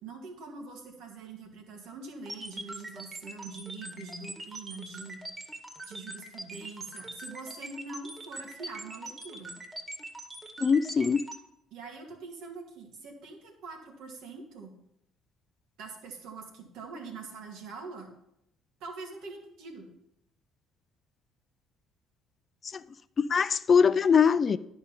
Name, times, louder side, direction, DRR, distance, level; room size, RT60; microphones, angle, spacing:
voice 1, 0.0-5.5 5.8-9.5 11.7-14.7 15.8-18.1 18.8-19.9, right 4 dB, 70° right, 2.1 m, -44 dB
sound 1, 2.3-11.4, right 2 dB, 25° right, 1.9 m, -42 dB
voice 2, 10.6-11.2 22.7-22.8 23.2-24.6, left 6 dB, 45° left, 0.4 m, -22 dB
11.0 x 5.1 x 5.5 m
hypercardioid pair, 60°, 0 cm